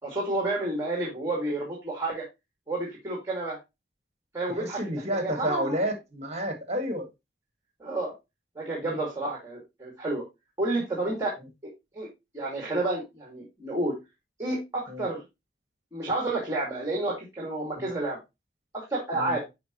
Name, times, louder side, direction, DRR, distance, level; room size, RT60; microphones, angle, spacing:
voice 1, 0.0-2.2 2.7-3.6 4.3-5.8 7.8-8.1 8.6-10.2 10.6-11.3 11.6-12.1 12.3-13.9 14.4-15.2 15.9-18.2 18.7-19.4, right 2 dB, 15° right, 2.4 m, -30 dB
voice 2, 4.6-7.1 8.8-9.0 14.9-15.0 17.8-17.9 19.1-19.4, equal, 35° right, 1.9 m, -30 dB
10.0 x 5.1 x 3.0 m
head